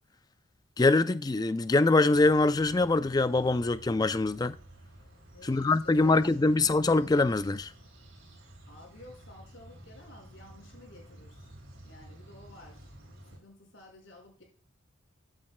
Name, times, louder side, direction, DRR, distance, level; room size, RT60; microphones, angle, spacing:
voice 1, 0.8-4.6 5.4-7.7, left 2 dB, 20° left, 0.3 m, -24 dB
sound 1, 2.1-13.4, right 1 dB, 65° right, 3.3 m, -52 dB
voice 2, 5.3-6.6 8.7-11.6 11.8-13.0 13.3-14.4, left 1 dB, 60° left, 5.2 m, -53 dB
14.0 x 8.9 x 2.2 m
head